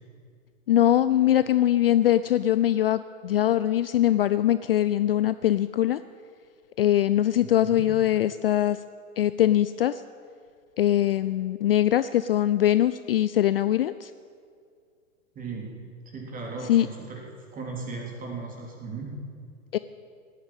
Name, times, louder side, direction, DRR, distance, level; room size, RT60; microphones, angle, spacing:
voice 1, 0.7-6.0 6.8-8.8 9.2-10.0 10.8-14.1 16.7-16.9 19.7-19.8, left 12 dB, 45° left, 14 dB, 0.4 m, -22 dB
voice 2, 7.4-7.9 15.4-15.7 16.1-17.2 17.5-19.1, right 4 dB, 20° right, -1 dB, 3.6 m, -36 dB
18.0 x 8.9 x 9.1 m, 2.2 s
figure-of-eight pair, 110°, 41 cm